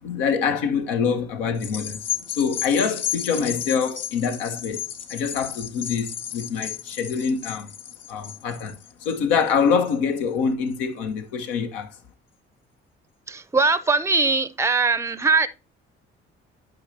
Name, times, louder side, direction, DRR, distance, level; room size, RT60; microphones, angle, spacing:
voice 1, 0.0-4.8 5.1-7.7 8.1-11.9, left 6 dB, 75° left, 1.2 m, -25 dB
sound 1, 1.6-10.2 10.7-10.8, left 9 dB, 50° left, 1.1 m, -33 dB
voice 2, 13.3-15.5, right 4 dB, 10° right, 0.7 m, -21 dB
11.0 x 5.3 x 2.8 m
hypercardioid pair, 45°, 32 cm